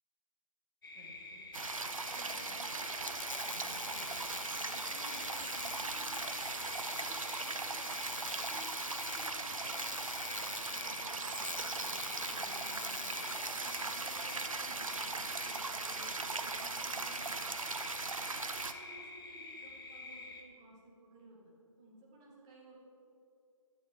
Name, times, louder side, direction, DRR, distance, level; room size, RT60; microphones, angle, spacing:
sound 1, 0.8-20.4, left 3 dB, 40° left, 0.7 m, -48 dB
voice 1, 0.9-17.7 18.1-21.5 21.8-22.8, right 1 dB, 10° right, -4 dB, 0.5 m, -57 dB
sound 2, 1.5-18.7, right 3 dB, 75° right, 0.5 m, -39 dB
sound 3, 2.9-14.4, left 5 dB, 65° left, 0.4 m, -46 dB
9.8 x 8.9 x 2.2 m, 2.6 s
figure-of-eight pair, 150°, 18 cm